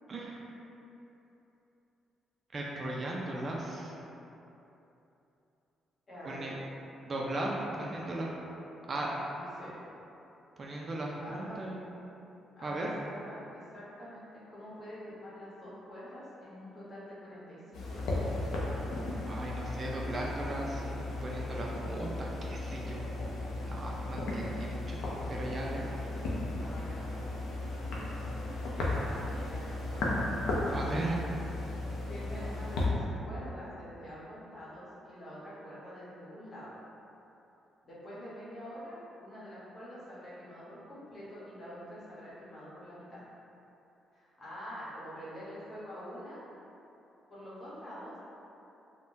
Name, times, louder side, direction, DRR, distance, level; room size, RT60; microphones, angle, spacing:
voice 1, 0.1-0.4 2.5-3.9 6.2-6.6 7.1-8.4 8.9-9.1 10.6-11.8 12.6-12.9 19.3-23.1 23.7-25.0 25.3-25.8 30.7-31.2, right 1 dB, 40° right, -3 dB, 0.4 m, -37 dB
voice 2, 6.1-6.5 9.1-9.8 11.2-11.6 12.6-14.2 14.5-18.5 26.5-27.0 28.7-30.3 32.1-36.8 37.8-43.2 44.1-46.4 47.3-48.2, equal, 35° left, -9 dB, 1.1 m, -46 dB
sound 1, 17.7-32.9, left 2 dB, 80° left, 0.5 m, -35 dB
3.4 x 2.1 x 2.6 m, 3.0 s
cardioid pair, 90°, 0 cm